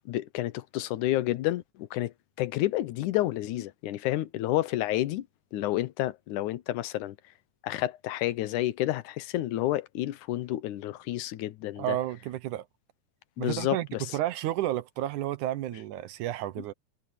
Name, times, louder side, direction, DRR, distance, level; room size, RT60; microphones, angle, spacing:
voice 1, 0.1-5.3 5.5-7.2 7.6-12.0 13.4-14.2, left 15 dB, 90° left, 2.4 m, -30 dB
voice 2, 11.8-12.7 13.4-13.9 14.1-16.7, right 14 dB, 85° right, 2.5 m, -31 dB
omnidirectional pair, 3.4 m